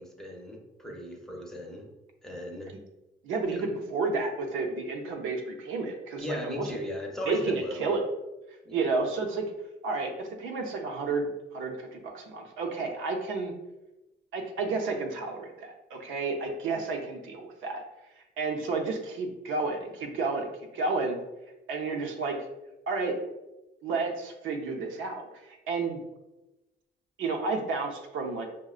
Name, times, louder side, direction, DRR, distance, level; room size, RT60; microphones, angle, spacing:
voice 1, 0.0-1.9 2.2-2.7 3.5-3.6 6.2-7.9 8.6-8.8, equal, ahead, 0 dB, 0.6 m, -37 dB
voice 2, 3.2-6.7 7.3-8.1 8.7-9.5 9.8-13.5 14.3-17.8 18.4-21.2 21.7-22.4 22.9-23.2 23.8-26.0 27.2-28.5, right 3 dB, 85° right, 2 dB, 0.6 m, -31 dB
4.9 x 2.1 x 2.4 m, 0.99 s
cardioid pair, 90°, 20 cm